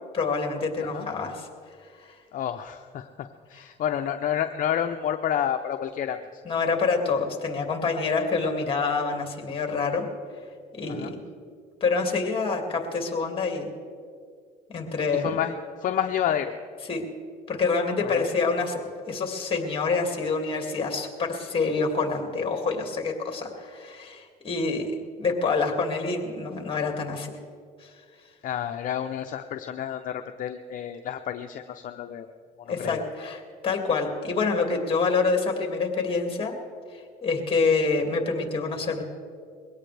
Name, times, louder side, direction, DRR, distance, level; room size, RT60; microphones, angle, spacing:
voice 1, 0.1-1.5 2.0-2.2 3.5-3.6 6.5-10.1 10.7-11.2 11.8-13.7 14.7-15.4 16.9-17.0 17.5-18.8 19.1-24.9 25.2-27.3 27.8-27.9 32.7-36.5 36.9-39.0, left 4 dB, 30° left, 3 dB, 2.4 m, -27 dB
voice 2, 2.3-6.4 10.9-11.1 15.1-16.5 18.0-18.2 28.4-32.3 32.8-33.0, left 9 dB, 55° left, 6 dB, 0.6 m, -30 dB
21.5 x 17.0 x 3.4 m, 2.2 s
cardioid pair, 110°, 17 cm